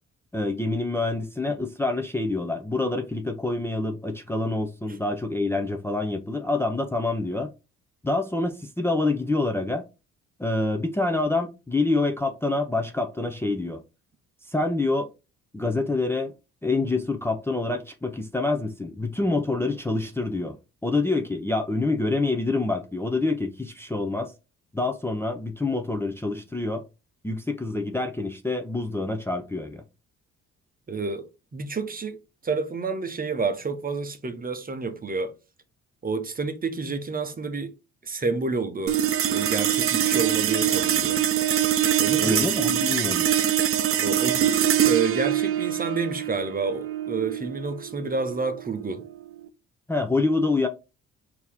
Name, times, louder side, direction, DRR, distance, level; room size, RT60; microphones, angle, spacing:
voice 1, 0.3-7.5 8.0-9.8 10.4-13.8 14.5-15.1 15.5-16.3 16.6-20.6 20.8-24.3 24.7-26.8 27.2-29.8 42.2-43.3 49.9-50.7, left 2 dB, 10° left, 0.6 m, -26 dB
voice 2, 30.9-32.2 32.4-35.3 36.0-37.7 38.0-39.0 39.3-41.2 42.0-42.4 44.0-49.1, right 4 dB, 30° right, 0.9 m, -29 dB
sound 1, 38.9-49.5, right 10 dB, 45° right, 0.6 m, -24 dB
4.4 x 2.9 x 3.5 m
cardioid pair, 90°, 30 cm